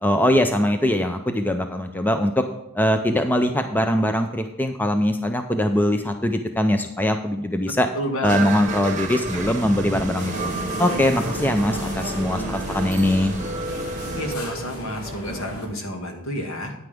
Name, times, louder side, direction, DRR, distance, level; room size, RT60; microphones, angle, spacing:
voice 1, 0.0-2.4 2.7-7.9 8.2-10.5 10.8-13.4, left 1 dB, 10° left, 6 dB, 0.5 m, -22 dB
voice 2, 7.9-8.5 9.1-9.5 14.1-16.7, equal, 65° left, 3 dB, 2.0 m, -30 dB
sound 1, 8.2-14.3, right 2 dB, 35° right, 1.0 m, -30 dB
sound 2, 10.1-15.7, equal, 85° left, 3.4 m, -34 dB
9.6 x 9.6 x 3.5 m, 0.90 s
head